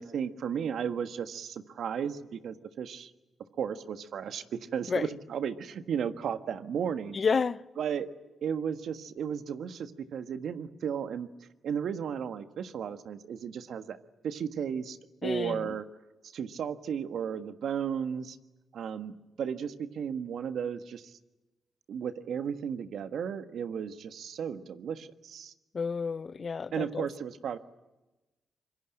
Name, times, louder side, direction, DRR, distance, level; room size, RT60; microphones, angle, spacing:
voice 1, 0.0-3.1 3.6-7.2 7.8-8.1 8.4-11.3 11.6-14.0 14.2-15.0 15.2-15.8 16.3-18.4 18.7-21.1 21.9-25.5 26.7-27.6, right 7 dB, 75° right, 1.5 m, -34 dB
voice 2, 7.1-7.6 15.2-15.8 25.7-27.1, left 5 dB, 50° left, 0.9 m, -30 dB
25.5 x 23.0 x 9.0 m
supercardioid pair, 45°, 0 cm